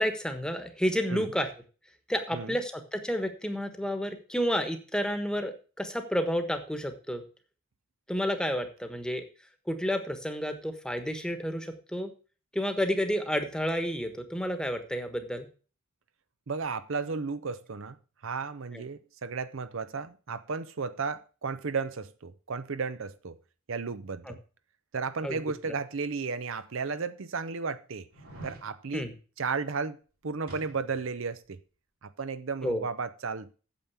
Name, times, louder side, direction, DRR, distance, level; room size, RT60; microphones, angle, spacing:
voice 1, 0.0-1.5 2.1-7.2 8.1-9.2 9.7-12.1 12.5-15.5 18.7-18.8 24.3-24.4 25.2-25.4 28.9-29.1 32.6-32.8, equal, 5° left, 1.2 m, -30 dB
voice 2, 16.5-18.0 18.2-23.4 23.7-24.4 24.9-28.1 28.4-29.1 29.4-31.6 32.0-33.5, right 4 dB, 65° right, 0.6 m, -34 dB
BC arrow shoot, 28.1-28.7 30.5-31.1 31.4-31.5, right 2 dB, 85° right, 4.3 m, -46 dB
9.1 x 7.3 x 7.0 m
head